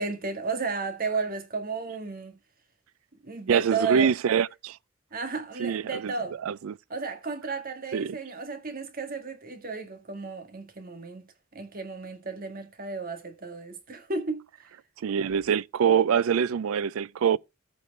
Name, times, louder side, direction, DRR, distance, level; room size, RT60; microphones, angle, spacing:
voice 1, 0.0-2.4 3.2-4.1 5.1-6.4 6.9-11.2 11.5-14.5, right 4 dB, 45° right, 1.7 m, -33 dB
voice 2, 3.5-4.8 5.6-6.1 6.4-6.8 7.9-8.2 15.0-17.4, right 7 dB, 85° right, 0.4 m, -24 dB
14.5 x 4.9 x 3.6 m
head